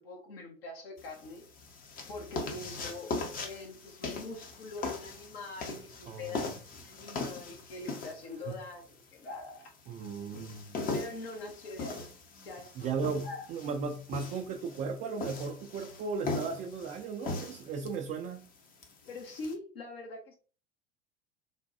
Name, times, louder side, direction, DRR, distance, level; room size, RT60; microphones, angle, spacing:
voice 1, 0.0-1.4 2.1-6.6 6.8-9.7 10.9-12.0 12.4-12.9 13.2-13.5 19.1-20.3, left 2 dB, 65° left, 1.0 m, -43 dB
sound 1, 1.0-19.5, left 3 dB, 25° left, 0.6 m, -40 dB
voice 2, 6.1-6.4 8.5-8.6 9.9-10.8 12.8-18.4, right 5 dB, 25° right, 0.3 m, -36 dB
3.3 x 2.2 x 2.7 m
figure-of-eight pair, 70°, 32 cm